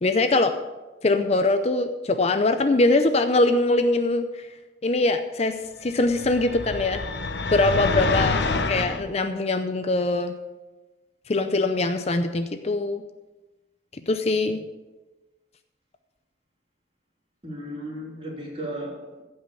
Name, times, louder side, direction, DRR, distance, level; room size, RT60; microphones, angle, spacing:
voice 1, 0.0-0.6 1.0-4.5 4.8-7.0 7.4-10.3 11.3-13.0 14.1-14.6, left 2 dB, 35° left, 0.6 m, -22 dB
sound 1, 6.1-9.0, left 3 dB, 65° left, 0.8 m, -26 dB
voice 2, 17.4-19.2, equal, 30° right, 3.2 m, -35 dB
15.5 x 5.6 x 6.8 m
head